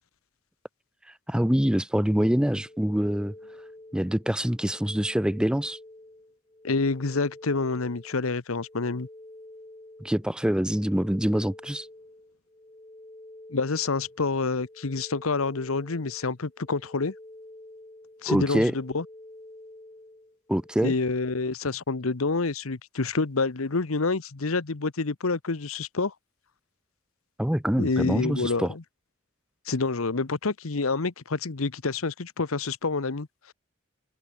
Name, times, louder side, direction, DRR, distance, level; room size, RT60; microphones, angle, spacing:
voice 1, 1.1-3.3 3.9-5.8 10.0-11.9 18.3-18.7 20.5-20.9 27.4-28.7, equal, 5° right, 0.5 m, -25 dB
sound 1, 2.5-20.8, left 1 dB, 20° left, 3.2 m, -49 dB
voice 2, 6.6-9.1 13.5-17.1 18.2-19.0 20.8-26.1 27.8-28.6 29.7-33.5, left 3 dB, 80° left, 1.1 m, -28 dB
open air
head